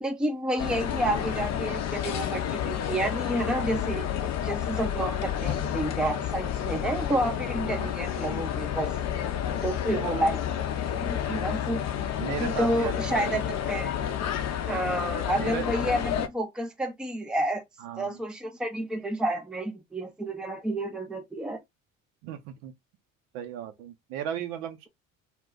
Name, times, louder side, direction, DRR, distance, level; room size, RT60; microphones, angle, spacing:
voice 1, 0.0-4.1 4.4-8.9 9.6-10.4 10.8-11.8 12.4-14.0 14.6-17.6 18.0-21.6, right 1 dB, ahead, 0.5 m, -30 dB
sound 1, 0.6-16.3, left 9 dB, 40° left, 0.6 m, -30 dB
voice 2, 7.7-8.1 9.9-10.2 12.2-13.4 15.3-15.6 17.8-18.2 22.2-22.7 23.3-24.9, right 10 dB, 65° right, 0.7 m, -36 dB
2.3 x 2.2 x 3.6 m
hypercardioid pair, 60°, 41 cm